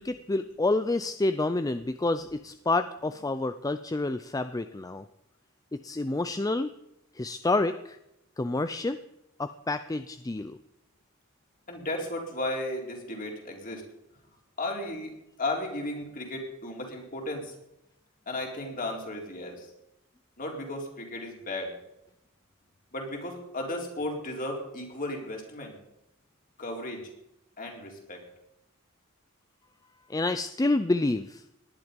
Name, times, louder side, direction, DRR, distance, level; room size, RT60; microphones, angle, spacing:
voice 1, 0.0-5.0 5.7-6.7 7.1-8.0 8.4-9.0 9.4-10.6 30.1-31.4, left 2 dB, 15° left, 11 dB, 0.5 m, -28 dB
voice 2, 11.7-13.8 14.6-15.1 15.4-17.5 18.3-19.7 20.4-21.7 22.9-25.8 26.6-27.0 27.6-28.2, left 1 dB, 40° left, 0 dB, 3.9 m, -34 dB
18.5 x 11.0 x 5.3 m, 0.85 s
head